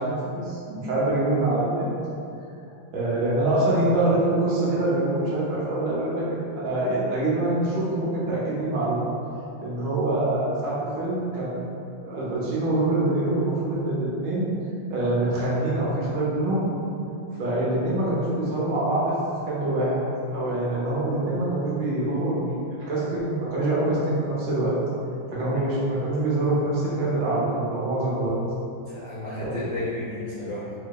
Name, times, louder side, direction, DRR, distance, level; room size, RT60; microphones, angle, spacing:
voice 1, 0.0-1.9 2.9-9.0 9.6-11.5 12.0-14.5 14.9-16.6 17.3-19.2 19.5-20.0 20.3-22.5 22.9-24.7 25.3-28.3 29.4-29.5, right 2 dB, 75° right, -7 dB, 1.5 m, -25 dB
voice 2, 28.9-30.7, left 1 dB, 70° left, -10 dB, 0.7 m, -33 dB
4.2 x 2.8 x 2.3 m, 2.6 s
omnidirectional pair, 2.0 m